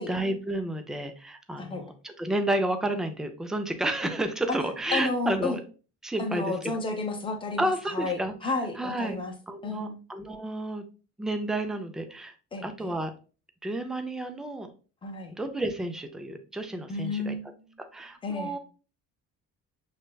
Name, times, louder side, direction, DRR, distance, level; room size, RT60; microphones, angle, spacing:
voice 1, 0.1-5.6 6.0-6.5 7.6-9.2 9.5-10.9 11.2-12.3 12.6-13.1 13.6-14.7 15.4-17.4 17.8-18.6, right 1 dB, ahead, 6 dB, 0.3 m, -31 dB
voice 2, 4.9-5.6 6.2-9.3 9.6-10.0 12.5-12.9 15.0-15.3 16.9-17.6 18.2-18.5, left 3 dB, 15° left, 3 dB, 0.7 m, -32 dB
6.2 x 3.3 x 2.2 m, 0.36 s
cardioid pair, 170°, 32 cm